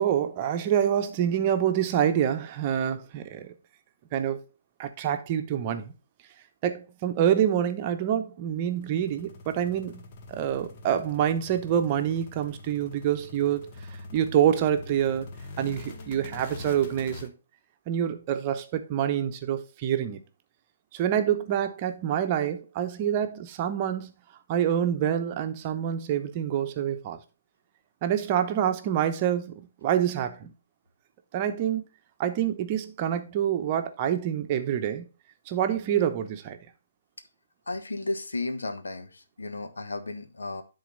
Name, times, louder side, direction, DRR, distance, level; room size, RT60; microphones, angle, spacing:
voice 1, 0.0-3.5 4.1-4.4 4.8-5.9 6.6-10.0 10.3-13.7 14.1-15.3 15.6-17.3 17.9-20.2 20.9-24.1 24.5-27.2 28.0-30.5 31.3-31.8 32.2-35.1 35.5-36.6, right 10 dB, 35° right, 0.9 m, -26 dB
sound 1, 8.5-17.3, left 2 dB, 40° left, 1.2 m, -44 dB
voice 2, 37.7-40.6, left 2 dB, 75° left, 1.2 m, -34 dB
10.5 x 4.0 x 3.9 m
figure-of-eight pair, 135°, 0 cm